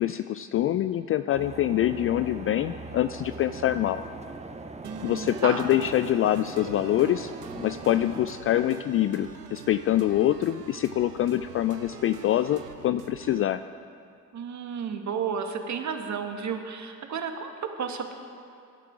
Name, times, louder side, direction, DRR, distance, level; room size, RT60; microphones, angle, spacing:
voice 1, 0.0-4.0 5.0-7.3 7.6-13.6, left 12 dB, 30° left, 12 dB, 0.4 m, -25 dB
sound 1, 1.3-8.3, right 3 dB, 15° right, 1.1 m, -41 dB
voice 2, 4.8-5.7 14.3-18.1, right 6 dB, 40° right, 5 dB, 2.0 m, -32 dB
sound 2, 4.8-13.4, right 6 dB, 85° right, 0.9 m, -44 dB
24.0 x 11.5 x 4.8 m, 2.5 s
figure-of-eight pair, 55°, 45 cm